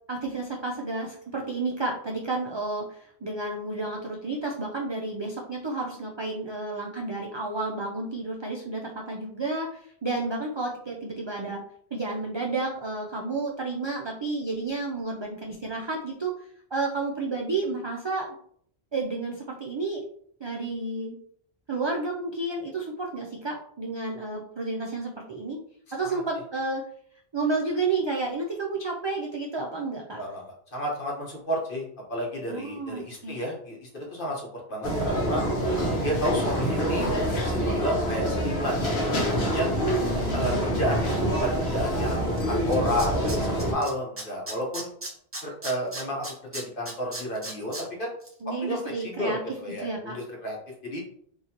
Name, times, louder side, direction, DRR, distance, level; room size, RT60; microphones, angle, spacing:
voice 1, 0.1-11.6 11.9-16.3 16.7-18.3 18.9-20.0 20.4-21.2 21.7-25.6 25.9-26.8 27.3-30.2 32.5-33.4 40.0-40.8 48.4-49.6 49.8-50.1, right 3 dB, 50° right, -1 dB, 0.3 m, -31 dB
voice 2, 30.1-35.4 36.0-37.1 37.4-39.7 40.3-44.9 45.4-46.3 46.5-48.1 48.4-48.8 49.0-50.6 50.8-51.0, equal, 55° left, -2 dB, 1.3 m, -31 dB
sound 1, 34.8-43.7, equal, 80° left, 1.1 m, -26 dB
Tools, 42.4-42.5 42.7-43.9 44.2-47.8 48.2-48.3, right 1 dB, 15° right, 0.7 m, -36 dB
3.8 x 2.7 x 2.9 m, 0.63 s
omnidirectional pair, 1.1 m